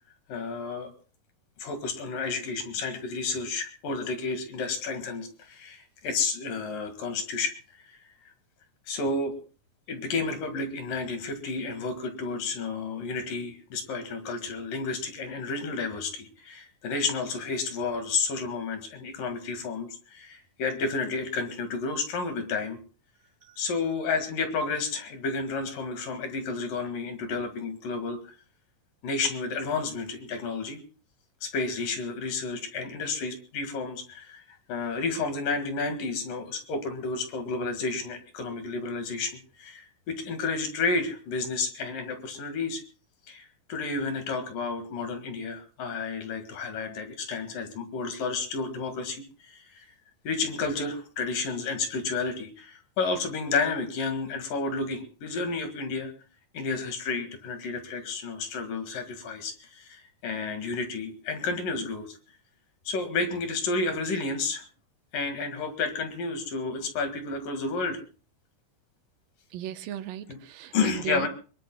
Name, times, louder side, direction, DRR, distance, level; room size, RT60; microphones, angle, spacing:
voice 1, 0.3-0.9 1.6-8.1 8.9-9.3 9.9-22.8 23.6-28.3 29.0-30.8 31.4-42.8 43.3-49.8 50.3-56.1 56.5-62.2 62.9-64.6 65.1-68.0 70.3-70.4 70.7-71.3, left 4 dB, 75° left, 7 dB, 3.7 m, -31 dB
voice 2, 69.5-71.3, right 11 dB, 85° right, 9 dB, 2.7 m, -36 dB
23.5 x 21.5 x 2.3 m, 0.37 s
omnidirectional pair, 3.9 m